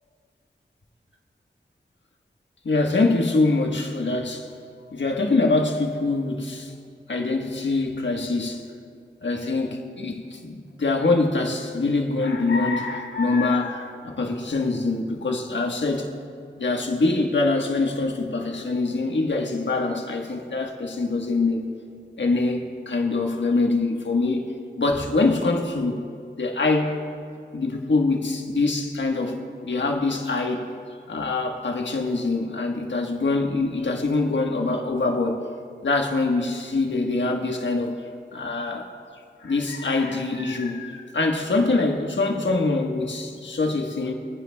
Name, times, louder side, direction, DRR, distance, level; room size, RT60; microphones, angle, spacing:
voice 1, 2.6-4.5 4.9-6.7 7.1-8.7 9.2-16.1 16.6-21.7 22.2-24.5 24.8-26.0 26.3-27.0 27.5-29.4 29.6-30.7 31.1-35.4 35.8-37.9 38.3-38.9 39.4-44.1, left 3 dB, 75° left, 2 dB, 1.4 m, -24 dB
28.5 x 9.9 x 2.3 m, 2.2 s
cardioid pair, 50°, 19 cm